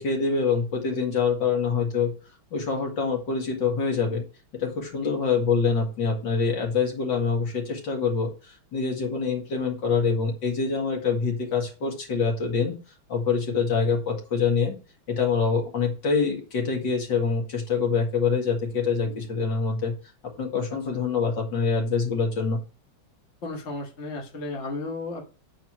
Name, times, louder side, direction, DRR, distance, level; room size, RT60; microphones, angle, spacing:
voice 1, 0.0-2.1 2.5-4.2 4.6-12.8 13.1-14.7 15.1-19.9 20.4-22.6, left 5 dB, 60° left, 1 dB, 2.7 m, -25 dB
voice 2, 23.4-25.2, left 2 dB, 35° left, -1 dB, 1.6 m, -34 dB
8.8 x 4.7 x 6.1 m, 0.34 s
omnidirectional pair, 2.3 m